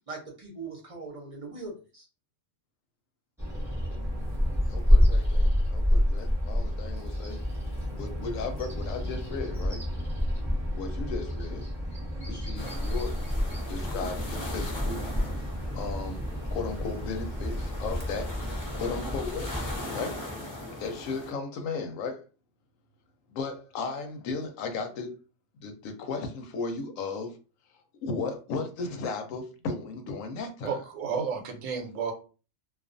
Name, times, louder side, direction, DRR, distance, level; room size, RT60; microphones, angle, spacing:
voice 1, 0.1-2.1, right 3 dB, 40° right, 0.5 m, -40 dB
Bird vocalization bird call bird song, 3.4-19.8, equal, ahead, 0.8 m, -28 dB
voice 2, 4.7-7.4 8.0-9.8 10.7-11.7 12.2-13.2 13.7-15.0 15.7-16.2 16.5-18.4 18.7-19.7 19.9-20.2 20.8-22.2 23.3-25.2 25.6-27.3 28.0-30.8, left 4 dB, 90° left, 1.0 m, -35 dB
sound 1, 12.6-21.3, left 1 dB, 30° left, 0.5 m, -40 dB
voice 3, 30.6-32.1, right 6 dB, 80° right, 1.0 m, -31 dB
2.4 x 2.3 x 2.4 m
omnidirectional pair, 1.3 m